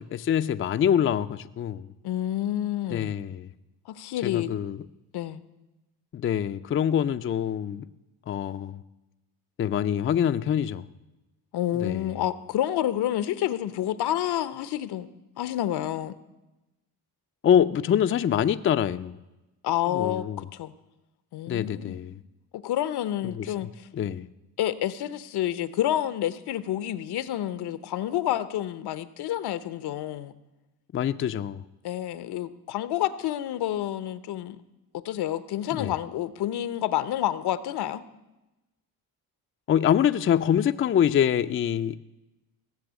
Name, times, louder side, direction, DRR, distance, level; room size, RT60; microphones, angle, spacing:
voice 1, 0.0-1.9 2.9-3.5 4.2-4.8 6.1-7.9 8.3-8.8 9.6-10.9 11.7-12.1 17.4-19.2 19.9-20.5 21.5-22.2 23.4-24.3 30.9-31.6 35.8-35.9 39.7-42.0, left 9 dB, 35° left, 0.4 m, -25 dB
voice 2, 2.0-3.2 3.9-4.5 5.1-5.4 11.5-15.1 15.4-16.1 19.6-20.7 21.3-22.0 22.5-23.9 24.6-30.3 31.8-34.6 34.9-38.0, left 12 dB, 85° left, 0.9 m, -29 dB
16.5 x 7.1 x 8.2 m
cardioid pair, 135°, 38 cm